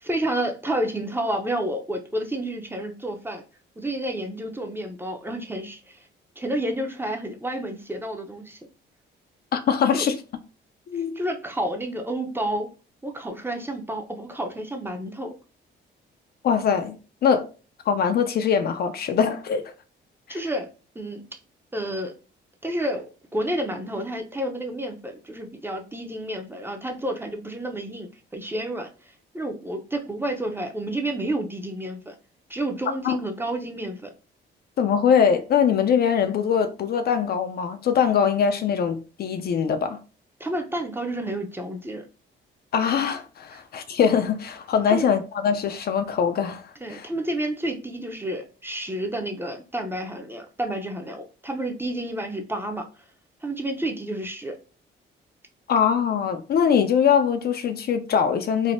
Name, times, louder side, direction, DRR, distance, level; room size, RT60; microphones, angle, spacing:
voice 1, 0.0-3.4 3.8-6.1 6.4-8.6 9.9-10.1 11.2-12.7 13.0-15.3 20.3-20.7 21.0-21.2 21.7-22.1 22.6-23.1 23.3-32.2 32.5-34.1 40.4-42.1 43.5-43.6 44.9-45.1 46.8-52.9 53.4-54.6, right 1 dB, 10° right, 0.5 m, -30 dB
voice 2, 9.5-10.2 10.9-11.1 16.4-17.5 17.9-19.7 20.3-20.4 33.0-33.1 34.8-40.0 42.7-47.1 55.7-58.7, left 7 dB, 50° left, 0.4 m, -22 dB
3.3 x 2.1 x 2.5 m
cardioid pair, 90°, 20 cm